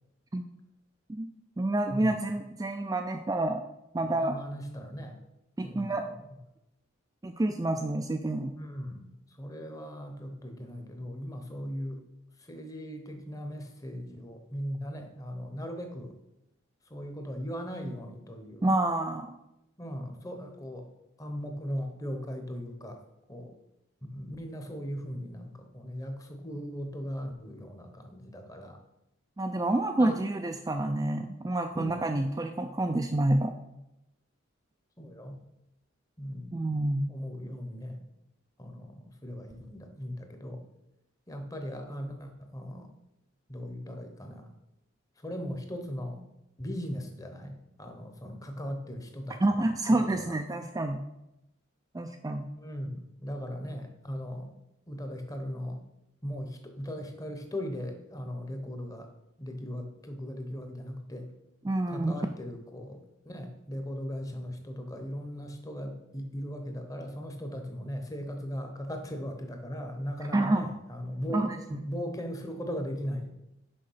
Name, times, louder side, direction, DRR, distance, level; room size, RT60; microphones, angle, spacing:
voice 1, 1.6-3.6 3.9-4.4 5.6-6.0 7.2-8.5 18.6-19.3 29.4-33.5 36.5-37.1 49.4-51.0 51.9-52.5 61.6-62.1 70.3-70.7 71.3-71.9, right 2 dB, 15° right, 4 dB, 0.3 m, -28 dB
voice 2, 4.2-5.2 5.6-6.1 8.6-9.1 9.4-12.0 12.5-16.1 16.9-18.7 19.8-20.8 21.2-23.0 23.3-23.5 24.1-28.8 30.0-30.2 31.7-32.1 35.0-35.4 36.2-36.6 37.1-38.0 38.6-40.6 41.3-42.9 43.5-44.5 45.2-46.2 46.6-50.3 52.6-54.5 54.9-55.8 56.2-59.1 59.4-61.3 61.9-63.0 63.3-73.3, equal, 15° left, 5 dB, 0.8 m, -38 dB
6.5 x 5.3 x 5.6 m, 0.88 s
head